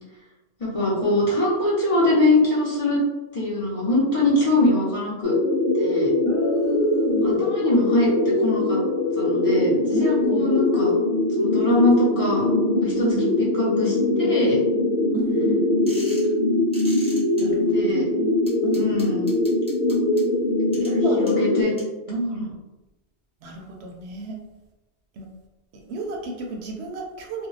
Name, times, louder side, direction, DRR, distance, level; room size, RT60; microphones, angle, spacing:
voice 1, 0.6-3.0 3.3-5.3 5.8-6.1 7.2-8.1 8.4-8.8 9.1-10.9 11.4-12.4 13.0-13.1 13.5-14.6 17.7-18.0 18.7-19.3 21.2-21.7 22.3-22.5, left 2 dB, 35° left, -8 dB, 0.8 m, -22 dB
sound 1, 5.2-21.6, left 2 dB, 70° left, 0.9 m, -22 dB
voice 2, 6.2-7.5 9.9-10.5 12.7-13.3 15.1-15.6 17.4-19.1 20.8-21.3 22.1-22.5 23.4-24.4 25.1-25.3 25.7-27.5, right 2 dB, 75° right, 2 dB, 0.8 m, -31 dB
sound 2, 15.9-16.3 16.7-17.4 18.5-20.2 20.7-20.9 21.3-21.4 21.8-21.9, equal, 5° left, 0.9 m, -39 dB
2.4 x 2.2 x 3.1 m, 1.0 s
omnidirectional pair, 1.1 m